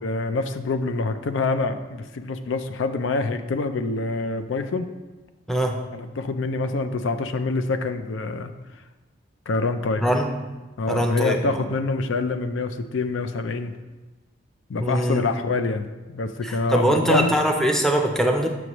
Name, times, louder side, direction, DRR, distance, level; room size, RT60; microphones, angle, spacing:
voice 1, 0.0-4.9 5.9-8.5 9.5-10.1 10.8-13.7 14.7-17.4, left 3 dB, 80° left, 9 dB, 0.4 m, -26 dB
voice 2, 10.9-11.6 14.8-15.2 16.4-18.5, right 1 dB, ahead, 2 dB, 0.5 m, -22 dB
7.8 x 5.9 x 3.0 m, 1.2 s
head